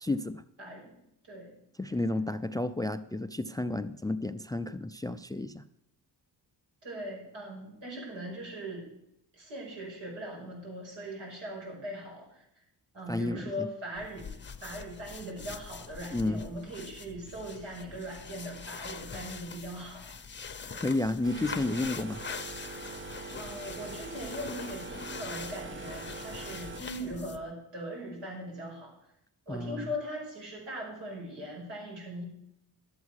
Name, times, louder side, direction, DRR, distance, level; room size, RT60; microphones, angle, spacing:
voice 1, 0.0-0.4 1.8-5.6 13.1-13.7 16.1-16.4 20.7-22.2 29.5-29.9, left 2 dB, 10° left, 13 dB, 0.3 m, -31 dB
voice 2, 0.6-1.0 1.3-1.5 6.8-8.9 9.3-12.6 12.9-20.1 23.4-28.9 29.5-32.2, equal, 85° right, -2 dB, 5.7 m, -40 dB
sound 1, 13.9-27.5, left 5 dB, 25° left, 0.7 m, -43 dB
sound 2, 21.2-26.8, right 4 dB, 30° right, 0.6 m, -43 dB
12.0 x 8.3 x 6.4 m, 0.79 s
cardioid pair, 100°, 42 cm